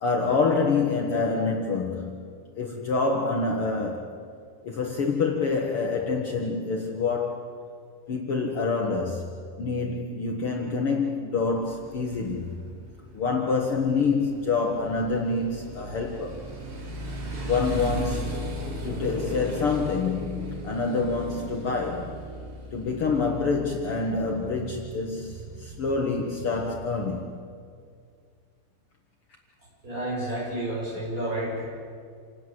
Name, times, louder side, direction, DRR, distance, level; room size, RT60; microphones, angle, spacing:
voice 1, 0.0-2.2 2.6-4.1 4.6-7.4 8.1-9.3 9.6-12.5 13.1-16.4 17.4-18.4 18.8-22.1 22.7-27.3, left 4 dB, 70° left, 1 dB, 1.3 m, -27 dB
Motorcycle, 11.5-27.2, right 1 dB, 80° right, 6.5 m, -37 dB
voice 2, 29.8-31.6, right 1 dB, 20° right, -5 dB, 8.2 m, -30 dB
28.0 x 18.0 x 7.8 m, 2.2 s
omnidirectional pair, 4.8 m